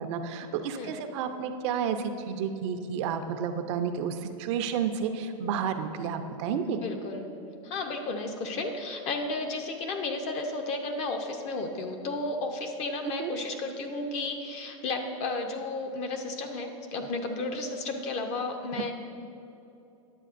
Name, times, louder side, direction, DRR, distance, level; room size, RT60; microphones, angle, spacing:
voice 1, 0.0-6.8 13.2-13.3 18.7-18.9, right 7 dB, 60° right, 8 dB, 0.5 m, -31 dB
voice 2, 6.7-7.3 7.6-18.9, left 3 dB, 40° left, 4 dB, 0.8 m, -33 dB
10.0 x 7.6 x 2.5 m, 2.8 s
hypercardioid pair, 125°, 17 cm